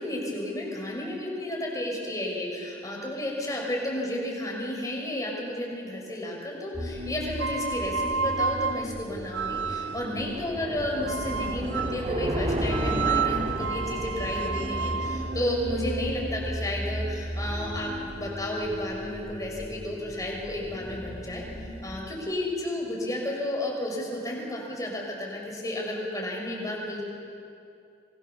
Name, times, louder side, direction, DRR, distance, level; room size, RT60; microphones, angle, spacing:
voice 1, 0.0-27.0, left 1 dB, 20° left, -1 dB, 6.3 m, -32 dB
sound 1, 6.7-22.0, equal, 15° right, 4.3 m, -37 dB
sound 2, 7.3-10.2 11.1-12.1 12.7-16.7, right 6 dB, 70° right, 0.6 m, -31 dB
sound 3, 8.9-16.2, equal, 35° right, 2.3 m, -33 dB
27.0 x 23.5 x 7.2 m, 2.6 s
head